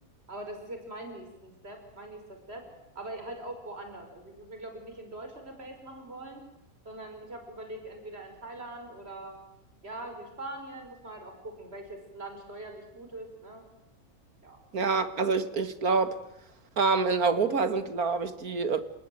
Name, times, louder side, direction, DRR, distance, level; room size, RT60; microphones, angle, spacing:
voice 1, 0.3-2.6 3.0-6.4 6.8-9.4 9.8-13.6 14.4-14.6, right 1 dB, 45° right, 5.6 m, -42 dB
voice 2, 14.7-16.2 16.8-18.8, right 4 dB, 85° right, 2.4 m, -26 dB
29.5 x 18.5 x 9.3 m
omnidirectional pair, 1.5 m